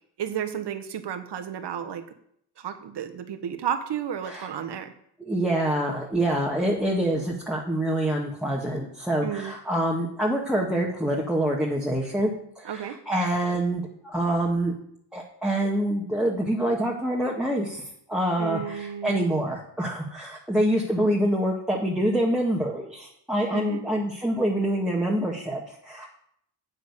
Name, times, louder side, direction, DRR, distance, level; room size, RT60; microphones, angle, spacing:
voice 1, 0.2-2.0 2.6-4.9 9.2-9.5 12.6-13.0 18.4-19.2 23.5-23.8, right 9 dB, 55° right, 8 dB, 1.3 m, -32 dB
voice 2, 5.2-14.8 15.1-17.8 18.1-26.1, right 1 dB, ahead, -3 dB, 1.8 m, -26 dB
7.7 x 7.1 x 6.8 m, 0.71 s
supercardioid pair, 70°, 48 cm